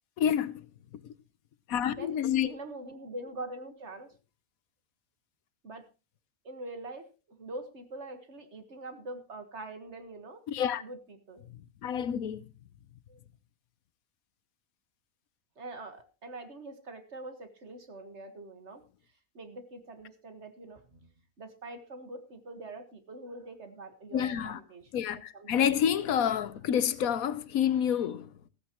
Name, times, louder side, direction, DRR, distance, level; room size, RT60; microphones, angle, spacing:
voice 1, 0.2-0.6 1.0-1.1 1.7-2.5 10.5-10.8 11.8-12.4 24.1-24.6 24.9-28.3, left 9 dB, 85° left, 1.3 m, -28 dB
voice 2, 2.4-4.1 5.6-5.9 6.4-10.4 10.8-11.4 13.1-13.2 15.6-18.8 19.3-24.9 25.3-25.6, right 2 dB, 55° right, 1.8 m, -44 dB
15.0 x 14.5 x 3.0 m
omnidirectional pair, 1.4 m